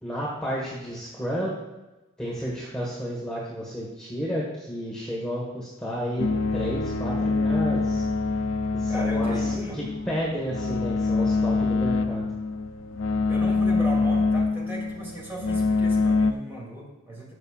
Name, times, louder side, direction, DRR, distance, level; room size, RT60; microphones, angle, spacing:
voice 1, 0.0-1.6 2.2-8.1 8.7-9.4 9.7-12.3, equal, 5° left, -7 dB, 1.6 m, -31 dB
sound 1, 6.2-16.3, left 3 dB, 65° left, 0.6 m, -25 dB
voice 2, 8.9-9.8 13.3-17.3, right 1 dB, 10° right, -4 dB, 2.8 m, -36 dB
19.5 x 6.8 x 2.5 m, 1.1 s
head